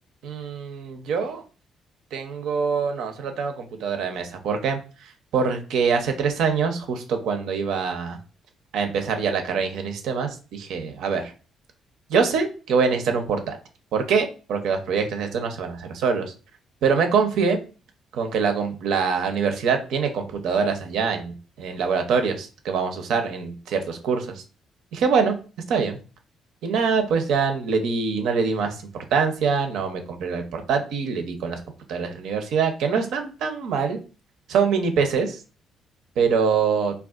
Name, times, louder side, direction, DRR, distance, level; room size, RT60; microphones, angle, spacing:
voice 1, 0.2-1.4 2.1-8.2 8.7-11.2 12.1-13.6 13.9-16.3 16.8-17.6 18.1-24.4 24.9-25.3 25.7-26.0 26.6-28.8 29.1-31.6 31.9-34.0 34.5-35.4 36.2-36.9, right 5 dB, 80° right, 6 dB, 0.5 m, -24 dB
3.5 x 2.3 x 2.4 m, 0.35 s
cardioid pair, 90°, 0 cm